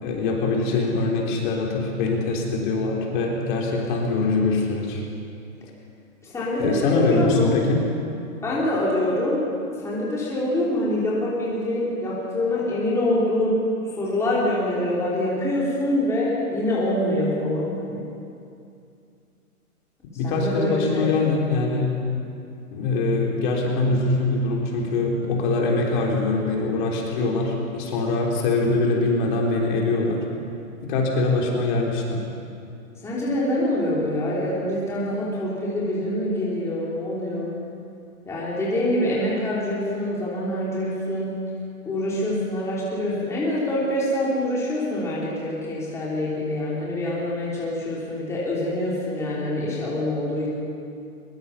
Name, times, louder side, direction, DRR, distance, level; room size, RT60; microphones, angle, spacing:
voice 1, 0.0-5.0 6.6-7.8 20.2-22.3 22.7-30.3 30.8-32.2, left 3 dB, 35° left, -1 dB, 3.6 m, -23 dB
voice 2, 6.2-7.6 8.4-18.1 20.2-21.2 33.0-37.5 38.2-41.4 41.8-50.5, left 1 dB, 5° left, -7 dB, 3.1 m, -25 dB
23.5 x 22.5 x 5.7 m, 2.5 s
hypercardioid pair, 155°, 44 cm